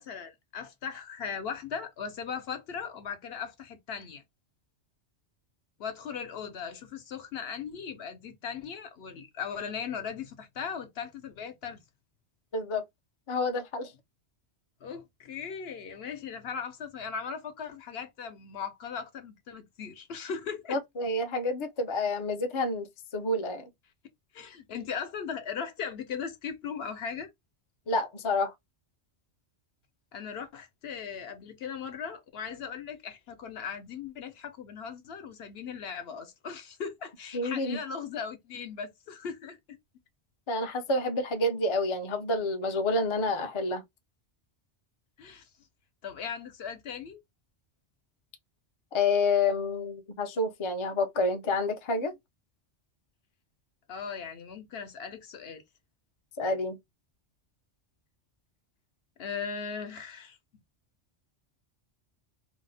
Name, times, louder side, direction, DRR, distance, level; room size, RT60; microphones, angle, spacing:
voice 1, 0.0-4.2 5.8-11.8 14.8-20.8 24.3-27.3 30.1-39.8 45.2-45.5 46.0-47.2 53.9-55.6 59.2-60.4, left 6 dB, 70° left, 0.9 m, -38 dB
voice 2, 12.5-12.8 13.3-13.9 20.7-22.9 23.1-23.6 27.9-28.5 37.3-37.8 40.5-43.8 48.9-52.1 56.4-56.8, left 2 dB, 40° left, 0.4 m, -28 dB
2.7 x 2.0 x 3.9 m
omnidirectional pair, 1.1 m